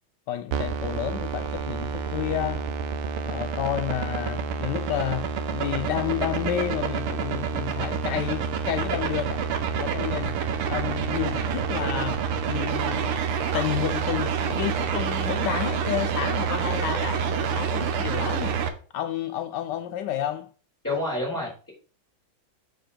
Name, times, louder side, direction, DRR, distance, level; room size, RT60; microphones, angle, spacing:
voice 1, 0.3-2.7 3.3-9.4 9.8-10.4 10.7-12.2 12.5-13.2 13.5-18.6 18.9-20.5, left 11 dB, 75° left, 1.0 m, -30 dB
sound 1, 0.5-18.7, right 6 dB, 90° right, 1.9 m, -28 dB
voice 2, 20.8-21.7, left 2 dB, 10° left, 4.8 m, -28 dB
7.5 x 6.8 x 4.4 m
omnidirectional pair, 2.4 m